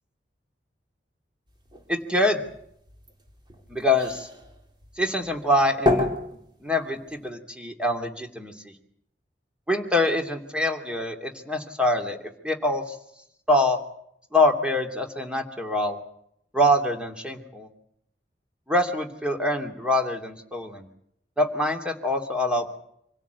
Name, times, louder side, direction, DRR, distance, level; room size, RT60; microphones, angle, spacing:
sound 1, 1.5-7.3, left 2 dB, 25° right, 4.0 m, -31 dB
voice 1, 1.9-2.4 3.7-4.3 5.0-6.1 6.6-8.5 9.7-12.2 12.4-13.0 13.5-13.8 14.3-16.0 16.5-17.7 18.7-20.9 21.4-22.8, left 1 dB, 5° right, 3 dB, 2.7 m, -24 dB
26.5 x 17.0 x 8.2 m, 0.74 s
head